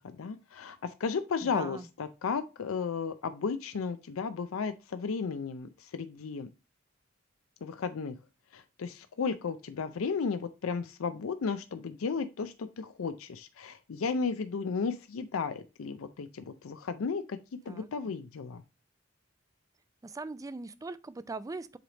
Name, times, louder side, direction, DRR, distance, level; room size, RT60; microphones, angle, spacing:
voice 1, 0.0-6.5 7.6-8.1 8.5-17.4 17.7-18.6, left 5 dB, 80° left, 0.5 m, -34 dB
voice 2, 1.4-1.9 17.7-17.9 20.0-21.8, right 3 dB, 15° right, 0.3 m, -40 dB
7.8 x 3.2 x 3.9 m
head